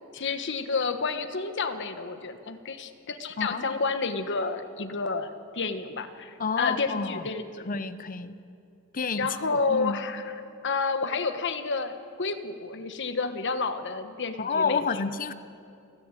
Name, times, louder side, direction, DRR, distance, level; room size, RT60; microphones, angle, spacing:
voice 1, 0.1-7.7 9.2-10.4 10.6-14.8, left 4 dB, 55° left, 1.2 m, -30 dB
voice 2, 3.4-3.8 6.4-7.2 7.7-8.4 8.9-10.0 14.4-15.3, left 5 dB, 40° left, 0.8 m, -29 dB
29.0 x 10.5 x 9.1 m
head